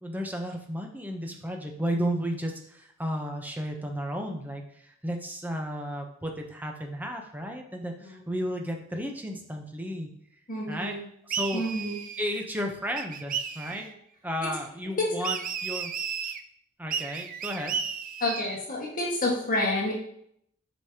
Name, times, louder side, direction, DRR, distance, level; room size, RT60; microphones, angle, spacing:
voice 1, 0.0-10.1 10.7-11.0 11.2-11.6 12.2-13.9 14.2-15.9 16.8-17.8, equal, 10° right, 2 dB, 0.8 m, -33 dB
voice 2, 10.5-11.1 11.5-12.0 13.8-13.9 15.0-15.1 18.2-19.9, left 1 dB, 40° left, -3 dB, 1.6 m, -29 dB
sound 1, 11.3-12.4 13.0-13.9 15.2-16.4 16.9-18.6, right 7 dB, 40° right, 0.4 m, -34 dB
8.1 x 5.2 x 2.9 m, 0.71 s
head